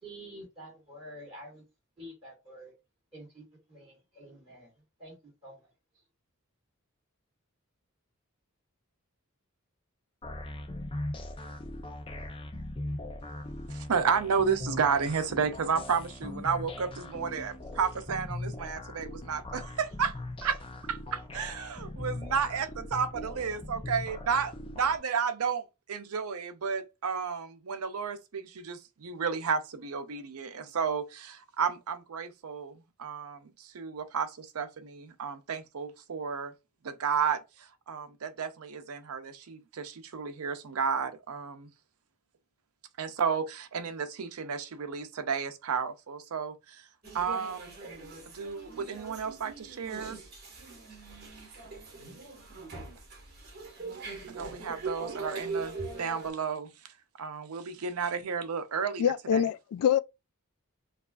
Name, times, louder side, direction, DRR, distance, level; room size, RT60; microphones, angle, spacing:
voice 1, 0.0-1.6 2.0-2.7 3.1-3.4 3.7-4.7 5.0-5.2 5.4-5.5, right 1 dB, 25° right, 2.3 m, -47 dB
sound 1, 10.2-25.0, left 1 dB, 25° left, 0.5 m, -40 dB
voice 2, 13.7-20.1 20.4-20.6 20.9-36.5 36.8-41.7 43.0-46.8 47.1-47.8 48.3-50.2 54.3-56.7 57.2-59.4, right 6 dB, 85° right, 0.6 m, -32 dB
sound 2, 47.0-56.3, right 3 dB, 45° right, 1.6 m, -41 dB
voice 3, 59.0-60.0, left 8 dB, 85° left, 0.3 m, -25 dB
4.7 x 2.4 x 2.3 m
head